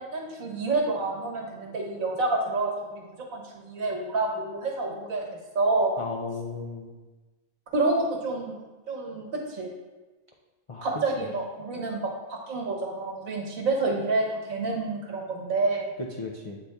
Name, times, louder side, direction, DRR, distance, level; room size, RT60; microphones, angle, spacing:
voice 1, 0.0-6.0 7.7-8.5 8.9-9.7 10.8-15.9, right 3 dB, 85° right, 0 dB, 1.6 m, -28 dB
voice 2, 6.0-6.9 10.7-11.3 16.0-16.6, left 3 dB, 60° left, -1 dB, 0.3 m, -35 dB
7.9 x 4.1 x 3.4 m, 1.2 s
omnidirectional pair, 1.4 m